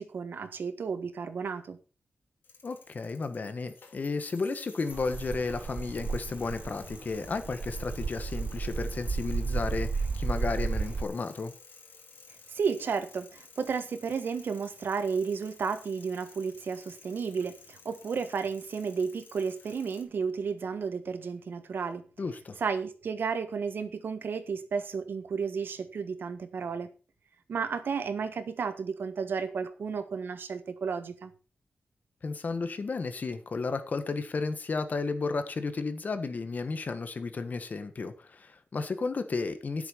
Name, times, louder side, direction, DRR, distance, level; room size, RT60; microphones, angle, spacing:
voice 1, 0.0-1.8 12.5-22.0 22.6-26.9 27.5-31.3, right 5 dB, 80° right, 1.4 m, -32 dB
sound 1, 2.4-20.0, left 4 dB, 75° left, 2.7 m, -53 dB
voice 2, 2.6-11.5 22.2-22.6 32.2-39.9, left 4 dB, 50° left, 1.5 m, -33 dB
sound 2, 4.9-11.0, right 4 dB, 45° right, 0.6 m, -33 dB
10.5 x 8.1 x 5.8 m
wide cardioid pair, 125°, 4 cm